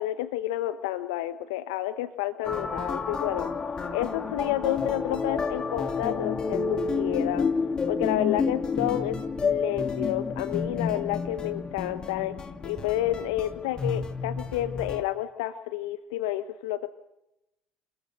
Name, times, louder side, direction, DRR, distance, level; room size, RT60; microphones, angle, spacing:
voice 1, 0.0-3.5 3.9-7.5 7.9-12.3 12.6-16.9, left 14 dB, 70° left, 11 dB, 1.0 m, -30 dB
sound 1, 2.4-15.0, left 4 dB, 30° left, 2.2 m, -30 dB
27.0 x 22.0 x 6.6 m, 0.91 s
hypercardioid pair, 60°, 3 cm